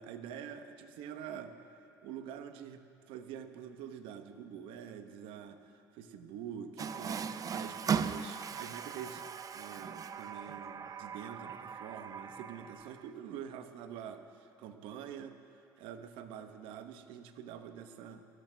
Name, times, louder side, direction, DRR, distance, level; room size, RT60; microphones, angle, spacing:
voice 1, 0.0-1.5 2.0-2.8 3.1-9.2 9.5-15.4 15.8-18.3, right 8 dB, 70° right, 8 dB, 1.0 m, -46 dB
Water tap faucet, 6.8-13.1, right 6 dB, 40° right, 0.6 m, -38 dB
29.5 x 19.5 x 2.3 m, 2.7 s
hypercardioid pair, 60°, 9 cm